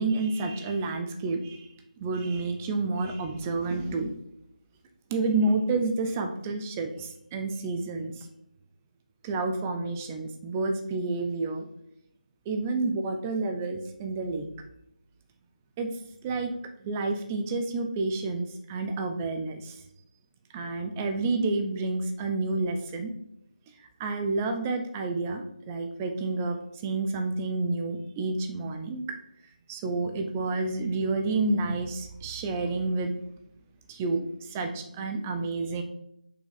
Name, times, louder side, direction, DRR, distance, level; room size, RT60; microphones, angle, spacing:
voice 1, 0.0-4.1 5.1-8.3 9.2-11.6 12.5-14.5 15.8-15.9 16.2-16.5 16.8-19.8 20.5-23.1 23.8-29.0 29.7-33.1 33.9-35.8, right 3 dB, 10° right, 5 dB, 0.5 m, -29 dB
6.8 x 5.6 x 4.1 m, 0.75 s
figure-of-eight pair, 170°, 5 cm